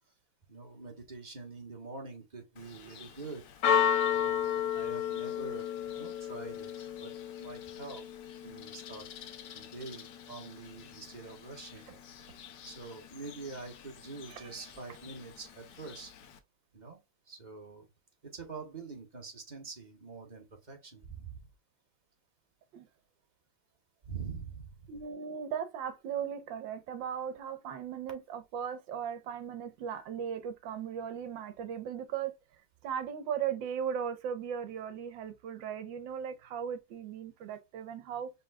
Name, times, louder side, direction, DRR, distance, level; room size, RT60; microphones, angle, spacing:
voice 1, 0.5-3.5 4.1-6.7 7.0-8.0 8.4-11.8 12.6-16.1 16.7-17.0 17.3-17.9 18.2-21.5 24.0-24.9, right 4 dB, 25° right, 1.3 m, -45 dB
Church bell, 2.6-16.4, left 8 dB, 70° left, 1.4 m, -35 dB
voice 2, 24.9-32.3 32.8-38.3, right 8 dB, 80° right, 1.5 m, -37 dB
5.3 x 3.7 x 2.2 m
omnidirectional pair, 2.0 m